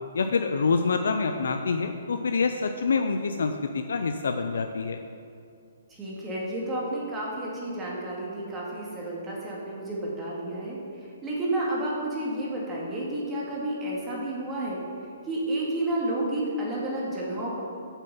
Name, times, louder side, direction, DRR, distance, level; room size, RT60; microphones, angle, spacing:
voice 1, 0.1-5.0, left 4 dB, 80° left, 6 dB, 0.5 m, -26 dB
voice 2, 5.9-14.8 15.2-17.6, right 1 dB, 15° right, -5 dB, 2.1 m, -31 dB
7.4 x 6.7 x 5.5 m, 2.5 s
hypercardioid pair, 150°, 0 cm